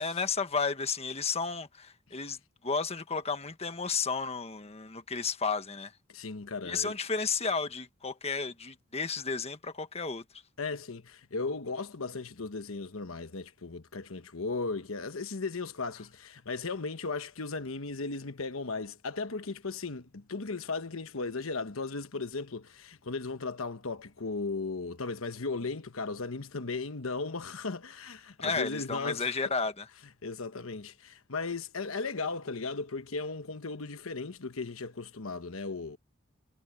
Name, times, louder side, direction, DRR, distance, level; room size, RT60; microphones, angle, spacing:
voice 1, 0.0-2.4 2.6-5.9 6.6-10.2 28.4-29.9, left 4 dB, 30° left, 1.4 m, -32 dB
voice 2, 6.1-6.9 10.6-29.3 30.2-36.0, left 3 dB, 85° left, 1.2 m, -36 dB
head